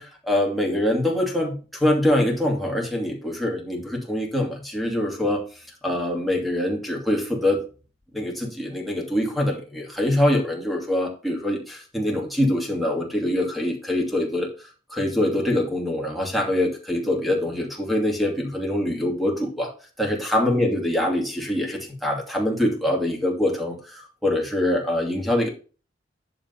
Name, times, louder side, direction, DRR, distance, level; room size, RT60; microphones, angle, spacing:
voice 1, 0.0-5.4 5.8-7.6 8.1-14.5 14.9-19.7 20.0-25.5, left 1 dB, ahead, -2 dB, 2.6 m, -24 dB
11.0 x 3.9 x 5.5 m, 0.35 s
head